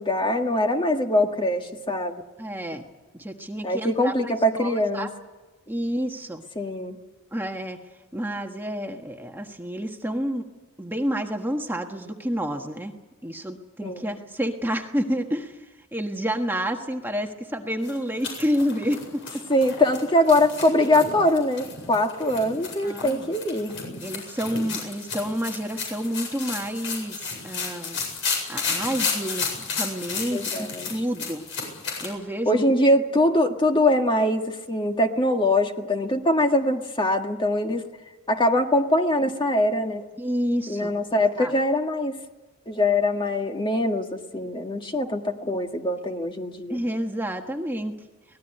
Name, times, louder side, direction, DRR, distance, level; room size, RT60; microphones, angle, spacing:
voice 1, 0.0-2.2 3.6-5.1 6.5-7.0 13.8-14.1 19.5-23.7 30.3-30.9 32.4-37.8 38.3-40.0 40.7-42.2 42.7-46.8, left 1 dB, 25° left, 4 dB, 1.7 m, -23 dB
voice 2, 2.4-2.8 3.1-5.1 5.7-6.4 7.3-7.8 8.1-10.4 10.8-12.9 13.2-19.2 22.8-23.3 24.0-28.0 28.5-29.5 29.7-31.4 32.0-32.6 40.2-40.9 41.4-41.6 46.7-47.9, equal, 10° right, 3 dB, 1.4 m, -29 dB
sound 1, 17.8-32.1, left 5 dB, 65° left, 7.9 m, -32 dB
24.0 x 19.0 x 10.0 m, 1.2 s
head